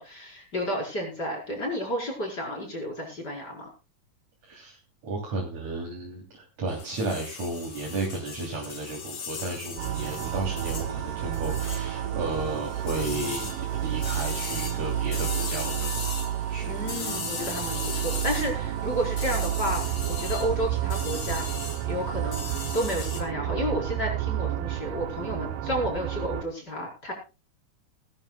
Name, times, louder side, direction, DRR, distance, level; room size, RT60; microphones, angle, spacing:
voice 1, 0.0-3.7 16.7-22.5 22.7-27.1, equal, 30° left, 1 dB, 5.3 m, -31 dB
voice 2, 4.5-4.8 5.0-16.0 16.5-16.7, right 2 dB, 55° right, -1 dB, 4.3 m, -33 dB
sound 1, 6.7-23.2, left 5 dB, 50° left, 3.6 m, -39 dB
sound 2, 9.8-26.4, right 11 dB, 85° right, 2.5 m, -30 dB
20.0 x 13.5 x 2.3 m, 0.30 s
omnidirectional pair, 3.7 m